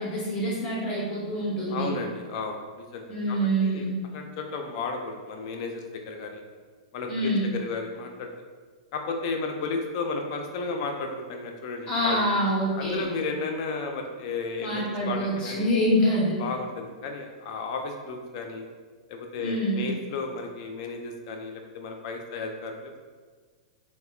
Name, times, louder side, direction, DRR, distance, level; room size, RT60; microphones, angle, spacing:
voice 1, 0.0-1.9 3.1-4.0 7.1-7.5 11.9-13.1 14.6-16.4 19.4-19.9, equal, 30° left, -5 dB, 0.8 m, -26 dB
voice 2, 1.7-3.9 4.1-6.4 6.9-8.3 8.9-12.2 12.8-15.7 16.4-18.6 19.1-23.0, left 4 dB, 55° left, 3 dB, 0.4 m, -33 dB
4.1 x 2.1 x 2.3 m, 1.5 s
hypercardioid pair, 125°, 3 cm